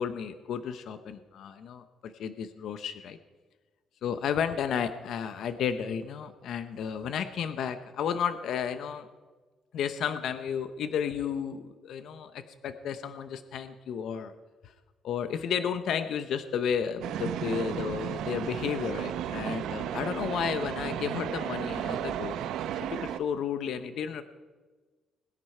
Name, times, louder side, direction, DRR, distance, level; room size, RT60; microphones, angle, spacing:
voice 1, 0.0-3.2 4.0-9.1 9.7-14.3 15.0-22.4 22.7-24.2, left 7 dB, 65° left, 11 dB, 0.8 m, -32 dB
sound 1, 17.0-23.2, right 10 dB, 85° right, 0.6 m, -34 dB
21.5 x 9.7 x 4.4 m, 1.3 s
cardioid pair, 150°, 0 cm